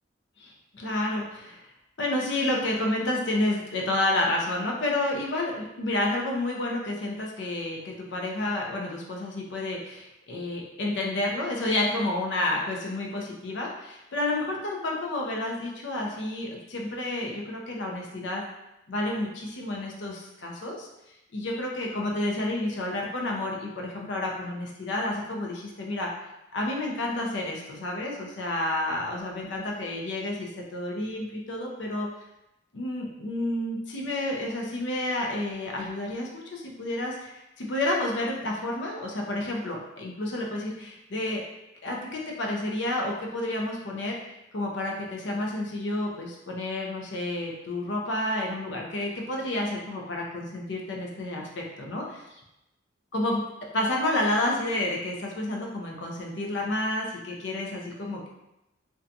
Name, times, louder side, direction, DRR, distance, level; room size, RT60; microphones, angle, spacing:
voice 1, 0.4-1.7 2.0-18.4 18.9-20.9 21.3-26.1 26.5-32.1 32.7-41.4 41.8-44.2 44.5-52.2 53.1-53.4 53.7-58.3, left 1 dB, 70° left, -1 dB, 0.5 m, -30 dB
2.6 x 2.2 x 2.6 m, 0.90 s
head